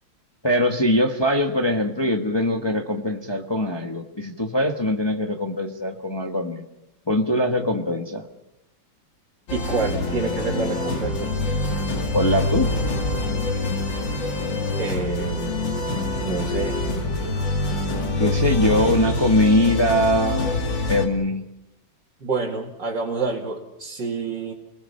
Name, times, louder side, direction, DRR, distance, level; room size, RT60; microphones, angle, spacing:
voice 1, 0.4-6.6 7.1-8.2 12.1-12.7 18.2-20.6 20.9-21.4, left 1 dB, 15° left, 3 dB, 1.2 m, -22 dB
sound 1, 9.5-21.1, left 2 dB, 65° left, 3.2 m, -25 dB
voice 2, 9.5-11.3 14.8-15.7 16.2-16.8 22.2-24.5, right 4 dB, 65° right, -3 dB, 3.0 m, -28 dB
29.5 x 20.5 x 5.6 m, 0.86 s
omnidirectional pair, 2.1 m